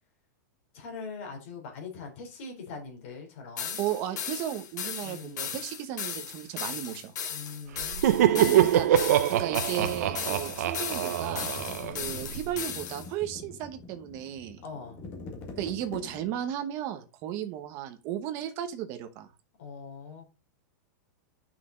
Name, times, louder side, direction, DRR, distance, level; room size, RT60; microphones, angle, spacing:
voice 1, 0.7-3.8 5.0-5.5 7.3-8.9 11.8-12.0 14.6-15.0 19.6-20.2, left 4 dB, 45° left, 2 dB, 3.5 m, -42 dB
sound 1, 3.6-13.1, left 7 dB, 70° left, 2.2 m, -36 dB
voice 2, 3.8-7.1 8.3-11.5 11.9-14.6 15.6-19.3, right 11 dB, 25° right, 7 dB, 1.0 m, -35 dB
Laughter, 7.8-12.5, right 11 dB, 55° right, 0.7 m, -24 dB
sound 2, 9.8-16.5, left 2 dB, 20° left, 1.7 m, -44 dB
8.2 x 6.1 x 3.8 m, 0.32 s
supercardioid pair, 180°, 10 cm